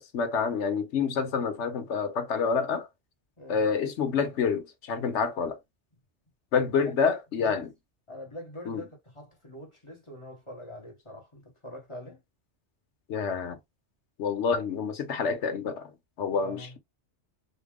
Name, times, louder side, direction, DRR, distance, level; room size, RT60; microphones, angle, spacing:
voice 1, 0.0-2.9 3.5-5.6 6.5-7.7 8.7-8.8 13.1-13.6 14.2-15.9 16.2-16.7, left 5 dB, 75° left, 1.1 m, -28 dB
voice 2, 8.1-12.2 16.3-16.8, equal, 30° left, 1.0 m, -44 dB
4.3 x 2.0 x 3.6 m
omnidirectional pair, 1.2 m